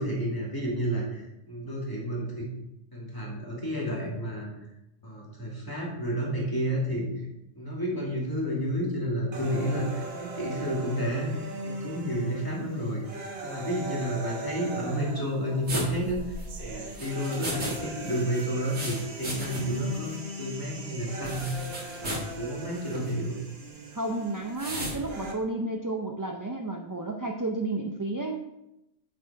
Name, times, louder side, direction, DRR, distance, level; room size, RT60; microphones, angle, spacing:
voice 1, 0.0-2.5 2.9-4.5 5.0-7.1 7.6-11.3 11.6-16.3 16.6-21.5 22.0-23.4, equal, 15° left, -3 dB, 2.2 m, -31 dB
sound 1, 9.3-25.3, right 2 dB, 55° right, 1.3 m, -40 dB
sound 2, 15.7-17.8 18.0-19.8 20.1-20.2 21.2-22.3 22.9-23.1 24.6-25.0, right 1 dB, 85° right, 2.5 m, -35 dB
voice 2, 23.9-28.4, right 2 dB, 25° right, 2 dB, 0.4 m, -32 dB
7.3 x 6.2 x 4.7 m, 0.88 s
omnidirectional pair, 1.3 m